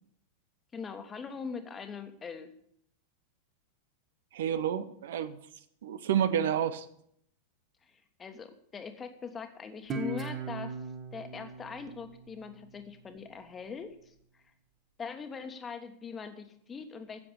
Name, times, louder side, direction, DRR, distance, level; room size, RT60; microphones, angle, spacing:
voice 1, 0.7-2.5 7.8-10.8 11.1-14.4 15.0-17.2, left 5 dB, 20° left, 8 dB, 1.5 m, -42 dB
voice 2, 4.3-5.4 5.8-6.9, right 9 dB, 60° right, 13 dB, 0.7 m, -29 dB
Guitar, 9.9-13.1, right 3 dB, 25° right, 1.5 m, -39 dB
11.0 x 7.6 x 8.2 m, 0.69 s
figure-of-eight pair, 90°, 0 cm